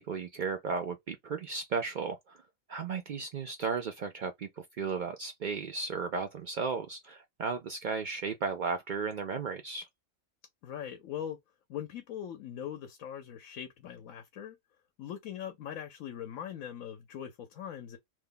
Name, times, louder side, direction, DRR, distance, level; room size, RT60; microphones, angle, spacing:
voice 1, 0.0-2.4 2.7-9.9, right 5 dB, 85° right, 0.4 m, -35 dB
voice 2, 10.6-11.4 11.7-14.6 15.0-18.0, left 9 dB, 80° left, 1.1 m, -41 dB
3.0 x 2.2 x 3.7 m
omnidirectional pair, 1.4 m